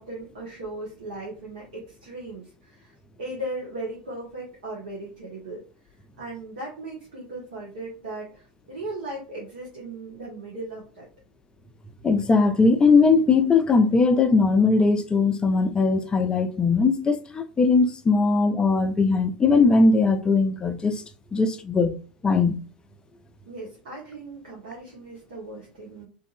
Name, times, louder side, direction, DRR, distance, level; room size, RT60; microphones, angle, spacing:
voice 1, 0.0-5.6 6.2-11.1 23.5-26.1, right 2 dB, 70° right, 0.9 m, -37 dB
voice 2, 12.0-21.0 21.3-22.0 22.2-22.6, left 4 dB, 15° left, 0.4 m, -20 dB
2.6 x 2.5 x 2.5 m
figure-of-eight pair, 85°, 5 cm